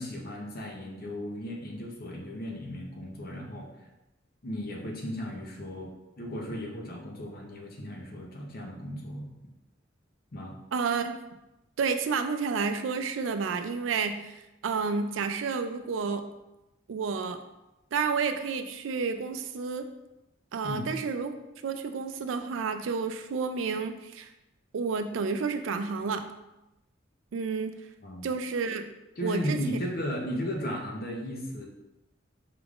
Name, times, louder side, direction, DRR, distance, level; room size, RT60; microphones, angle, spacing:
voice 1, 0.0-3.7 4.4-9.3 10.3-10.5 20.6-20.9 28.0-28.3 29.2-31.7, equal, 50° left, 0 dB, 0.7 m, -35 dB
voice 2, 10.7-11.1 11.8-16.2 16.9-17.4 17.9-19.9 20.5-21.3 21.6-24.3 24.7-26.3 27.3-27.8 28.2-28.9 29.2-29.6, right 5 dB, 75° right, 8 dB, 0.4 m, -30 dB
4.8 x 3.5 x 2.4 m, 0.95 s
head